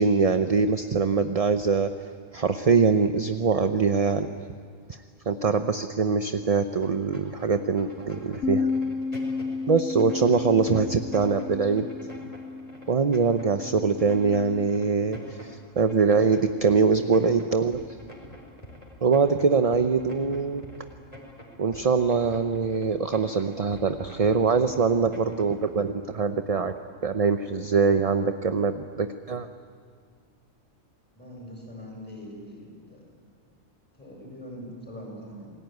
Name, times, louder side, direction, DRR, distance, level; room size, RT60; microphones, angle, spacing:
voice 1, 0.0-1.9 2.3-4.5 5.3-8.7 9.7-11.9 12.9-17.8 19.0-20.6 21.6-26.7 27.0-29.5, right 5 dB, 35° right, 9 dB, 0.7 m, -23 dB
sound 1, 6.8-25.6, left 1 dB, 25° left, 4.4 m, -45 dB
Bass guitar, 8.4-14.7, left 4 dB, 65° left, 1.2 m, -32 dB
voice 2, 31.1-33.0 33.9-35.5, equal, 5° left, -2 dB, 7.7 m, -42 dB
28.0 x 19.5 x 9.4 m, 2.1 s
omnidirectional pair, 1.4 m